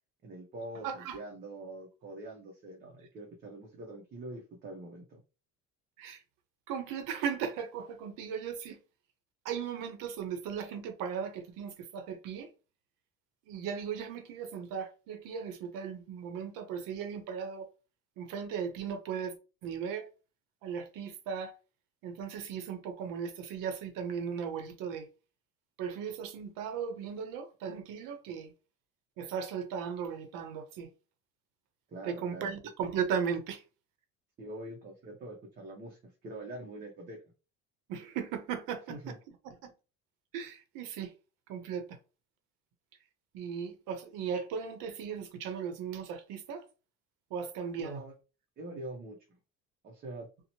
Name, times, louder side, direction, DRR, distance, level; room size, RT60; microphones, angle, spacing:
voice 1, 0.2-5.2 31.9-32.5 34.4-37.2 38.9-39.2 47.7-48.1 48.6-49.2 49.8-50.3, right 2 dB, 30° right, 0.5 m, -44 dB
voice 2, 0.8-1.2 6.0-6.2 6.7-8.8 9.4-12.5 13.5-17.7 18.2-19.3 19.6-20.1 20.6-21.5 22.0-25.1 25.8-28.5 29.2-30.9 32.0-33.6 37.9-39.1 39.5-39.7 40.3-41.1 41.5-42.0 43.3-46.6 47.3-48.0, right 7 dB, 70° right, 0.7 m, -37 dB
2.7 x 2.1 x 2.8 m
cardioid pair, 145°, 34 cm